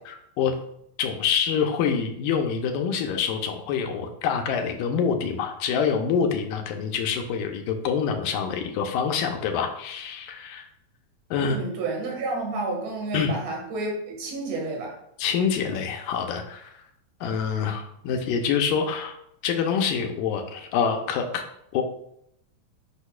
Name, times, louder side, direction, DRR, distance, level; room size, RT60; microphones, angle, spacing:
voice 1, 0.1-0.5 1.0-10.7 11.3-11.6 13.1-13.4 15.2-16.8 17.2-19.2 19.4-21.4 21.7-21.8, left 6 dB, 80° left, 4 dB, 2.2 m, -26 dB
voice 2, 11.4-15.0, right 2 dB, 50° right, -1 dB, 2.5 m, -30 dB
8.2 x 6.2 x 2.4 m, 0.73 s
omnidirectional pair, 4.2 m